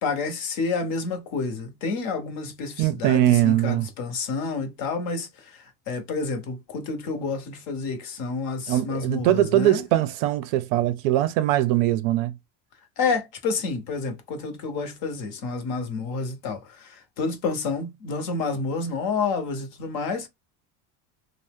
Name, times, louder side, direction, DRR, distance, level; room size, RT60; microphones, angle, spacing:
voice 1, 0.0-9.8 13.0-20.3, left 4 dB, 45° left, 0.7 m, -29 dB
voice 2, 2.8-3.9 8.7-12.3, right 13 dB, 60° right, 0.5 m, -21 dB
2.6 x 2.1 x 3.3 m
cardioid pair, 160°, 48 cm